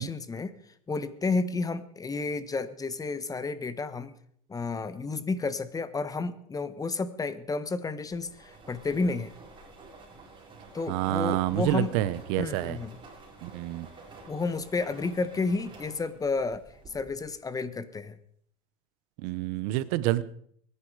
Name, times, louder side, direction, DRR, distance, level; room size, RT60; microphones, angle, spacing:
voice 1, 0.0-4.1 4.5-9.3 10.7-11.9 12.4-13.0 14.3-18.2, left 3 dB, 20° left, 14 dB, 1.2 m, -31 dB
sound 1, 8.1-17.4, right 3 dB, 25° right, 4.7 m, -50 dB
voice 2, 10.9-12.8 13.4-13.9 19.2-20.2, right 15 dB, 70° right, 16 dB, 1.0 m, -28 dB
22.5 x 10.0 x 4.9 m, 0.65 s
supercardioid pair, 105°, 18 cm